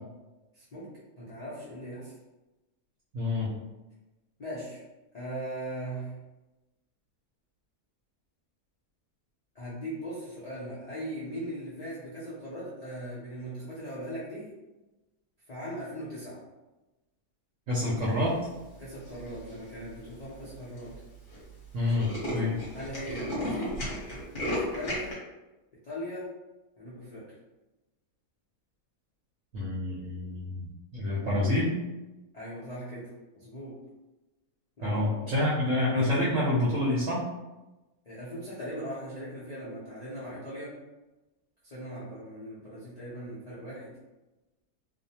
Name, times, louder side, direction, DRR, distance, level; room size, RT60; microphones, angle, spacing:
voice 1, 0.5-0.9 1.2-2.1 4.4-4.8 5.1-6.1 9.5-14.5 15.5-16.4 18.8-20.9 21.8-21.9 22.7-23.8 24.7-25.1 25.8-26.3 26.8-27.2 32.3-33.8 34.8-35.3 38.1-40.7 41.6-44.0, equal, 90° left, -9 dB, 0.3 m, -39 dB
voice 2, 3.1-3.5 17.7-18.4 21.7-22.6 29.5-30.7 30.9-31.7 34.8-37.2, left 1 dB, 65° right, -6 dB, 0.8 m, -27 dB
Tools, 19.1-19.5 20.1-20.2 20.4-20.5 20.8-21.0 21.3-21.4 21.7-25.1, equal, 40° left, 0.9 m, -34 dB
2.6 x 2.1 x 2.7 m, 1.1 s
omnidirectional pair, 1.7 m